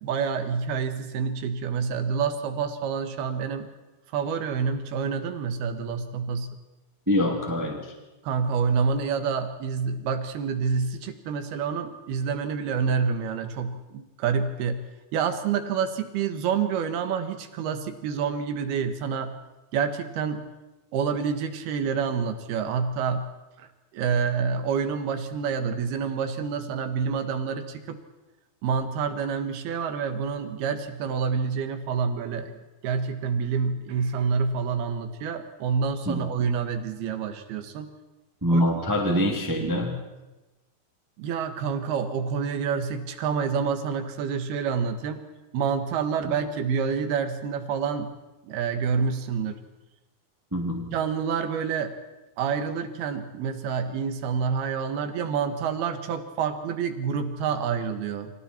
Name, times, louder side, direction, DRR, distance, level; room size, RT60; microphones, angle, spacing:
voice 1, 0.0-3.7 4.1-6.5 8.2-14.8 15.1-19.4 19.7-20.4 20.9-23.3 23.6-23.7 23.9-28.0 28.6-32.5 32.8-37.9 38.5-38.7 39.0-39.7 41.2-45.2 45.5-48.1 48.4-49.6 50.9-51.9 52.4-58.3, right 6 dB, 90° right, 8 dB, 3.5 m, -28 dB
voice 2, 7.1-7.9 36.1-36.3 38.4-40.0 50.5-50.9, equal, 5° right, 1 dB, 2.1 m, -24 dB
29.5 x 25.0 x 4.5 m, 1.1 s
omnidirectional pair, 4.3 m